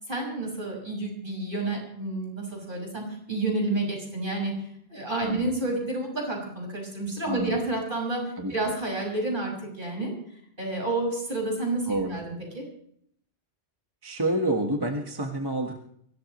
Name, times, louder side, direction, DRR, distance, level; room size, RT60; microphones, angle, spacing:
voice 1, 0.1-4.5 4.9-8.2 8.5-10.1 10.6-12.7, right 2 dB, 50° right, 0 dB, 6.7 m, -30 dB
voice 2, 7.2-7.6 8.4-8.5 11.9-12.2 14.0-15.8, right 1 dB, 20° right, 2 dB, 1.6 m, -28 dB
23.5 x 18.0 x 3.2 m, 0.68 s
omnidirectional pair, 1.1 m